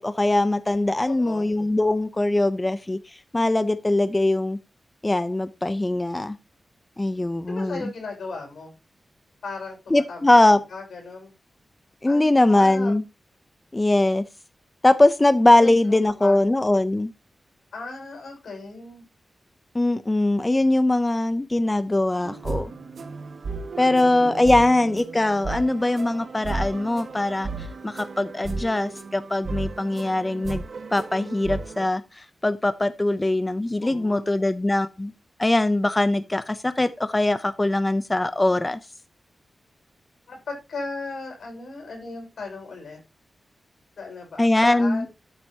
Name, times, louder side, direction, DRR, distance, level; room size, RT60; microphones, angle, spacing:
voice 1, 0.0-4.6 5.0-6.4 7.0-7.9 9.9-10.6 12.0-13.0 13.7-14.2 14.8-17.1 19.7-22.7 23.8-30.6 30.9-35.1 35.4-38.8 44.4-45.1, left 2 dB, 15° left, 0.5 m, -21 dB
voice 2, 1.1-1.6 7.5-8.7 9.4-10.4 10.7-11.3 12.1-12.9 15.6-16.4 17.7-19.0 23.8-24.3 33.8-34.3 40.3-43.0 44.0-45.1, left 3 dB, 85° left, 5.2 m, -37 dB
sound 1, 22.2-31.9, right 3 dB, 65° right, 1.5 m, -34 dB
12.5 x 7.5 x 2.8 m
wide cardioid pair, 150°, 0 cm